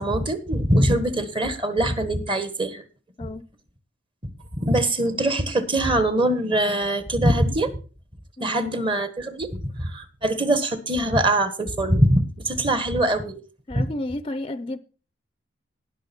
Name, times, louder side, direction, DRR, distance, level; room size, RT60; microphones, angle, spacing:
voice 1, 0.0-2.8 4.6-7.7 8.4-13.4 13.7-13.8, right 1 dB, 25° right, 1.4 m, -23 dB
voice 2, 8.4-8.8 13.7-14.8, left 1 dB, 30° left, 0.5 m, -32 dB
18.0 x 6.2 x 4.4 m
head